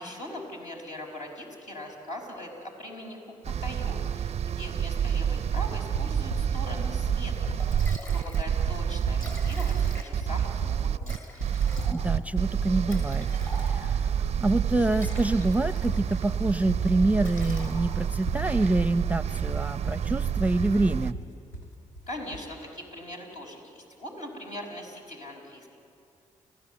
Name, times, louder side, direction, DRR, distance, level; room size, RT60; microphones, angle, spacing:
voice 1, 0.0-3.2 3.5-7.8 8.1-11.4 22.1-25.7, left 1 dB, 55° left, 0 dB, 5.3 m, -41 dB
sound 1, 3.5-21.1, right 8 dB, 45° right, 0.4 m, -28 dB
sound 2, 5.9-22.5, right 1 dB, 90° left, 1.9 m, -39 dB
Liquid, 7.6-8.5 8.8-8.9 9.1-10.3 11.0-14.0 14.7-16.2 16.5-16.8 17.2-18.2, equal, 20° left, 7.4 m, -45 dB
voice 2, 11.9-13.3 13.6-21.2, right 2 dB, 10° right, 13 dB, 0.7 m, -26 dB
30.0 x 15.5 x 7.9 m, 2.5 s
hypercardioid pair, 40°, 15 cm